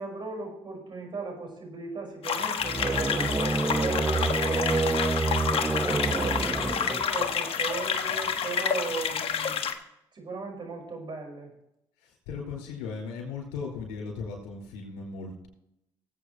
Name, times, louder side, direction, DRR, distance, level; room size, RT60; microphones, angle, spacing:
voice 1, 0.0-4.9 5.8-9.6 10.1-11.5, right 4 dB, 45° right, 1 dB, 5.5 m, -37 dB
sound 1, 2.2-9.7, left 7 dB, 60° left, 1.3 m, -29 dB
sound 2, 2.6-7.3, right 3 dB, 15° right, 0.6 m, -28 dB
voice 2, 12.0-15.5, left 5 dB, 80° left, 0 dB, 4.8 m, -37 dB
19.0 x 8.6 x 3.2 m, 0.81 s
hypercardioid pair, 60°, 11 cm